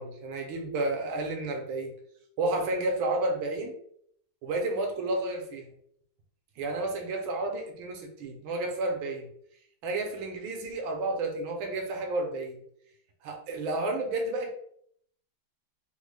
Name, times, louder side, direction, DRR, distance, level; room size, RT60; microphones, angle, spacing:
voice 1, 0.0-1.9 2.4-3.7 4.4-5.7 6.6-9.3 9.8-12.6 13.2-14.5, right 2 dB, 80° right, 3 dB, 1.5 m, -31 dB
3.8 x 2.1 x 3.2 m, 0.67 s
omnidirectional pair, 2.2 m